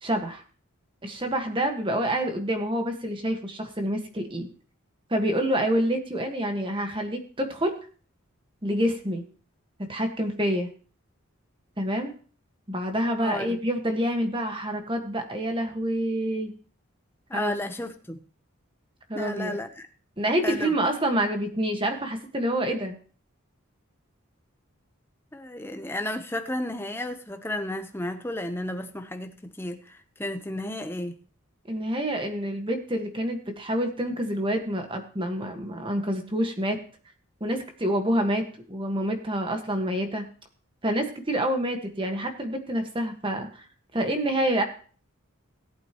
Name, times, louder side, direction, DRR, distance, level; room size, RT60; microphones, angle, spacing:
voice 1, 0.0-0.4 1.0-4.5 5.1-7.8 8.6-9.2 9.8-10.7 11.8-12.1 12.7-16.5 17.3-17.6 19.1-19.6 20.2-23.0 31.7-36.8 37.4-40.3 40.8-43.5 43.9-44.6, right 1 dB, 25° right, 1.5 m, -27 dB
voice 2, 13.2-13.6 17.3-18.2 19.1-19.9 20.4-20.8 25.3-31.2, left 1 dB, 10° left, 0.8 m, -33 dB
18.0 x 8.5 x 3.0 m
head